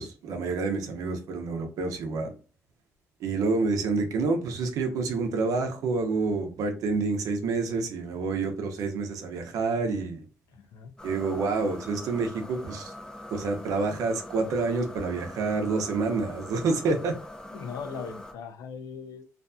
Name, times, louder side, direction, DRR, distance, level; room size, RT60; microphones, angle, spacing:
voice 1, 0.0-2.3 3.2-10.2 11.0-12.9 13.3-17.1, right 4 dB, 80° right, 0.7 m, -28 dB
voice 2, 10.5-10.9 17.5-19.2, left 6 dB, 75° left, 0.5 m, -39 dB
sound 1, 11.0-18.3, left 1 dB, 15° left, 0.5 m, -43 dB
2.5 x 2.2 x 2.5 m
cardioid pair, 120°, 6 cm